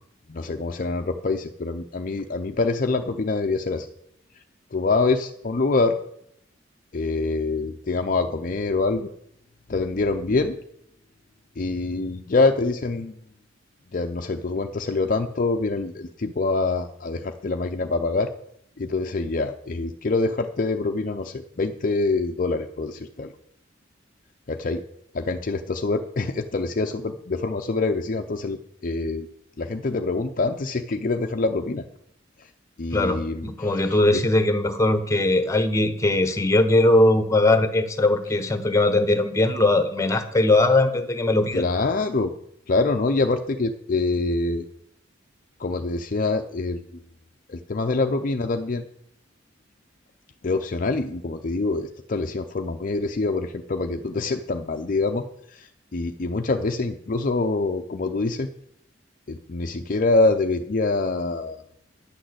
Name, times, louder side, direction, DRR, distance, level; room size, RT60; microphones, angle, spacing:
voice 1, 0.3-3.9 4.7-6.0 6.9-9.1 9.7-10.6 11.6-13.1 13.9-18.3 18.8-23.3 24.5-24.8 25.1-29.3 29.6-31.8 32.8-34.2 41.5-42.3 42.7-44.7 45.6-47.0 47.5-48.8 50.4-58.5 59.3-61.6, left 3 dB, 45° left, 6 dB, 0.5 m, -25 dB
voice 2, 32.9-41.6, left 2 dB, 15° left, 9 dB, 1.1 m, -20 dB
10.0 x 6.4 x 7.9 m, 0.73 s
head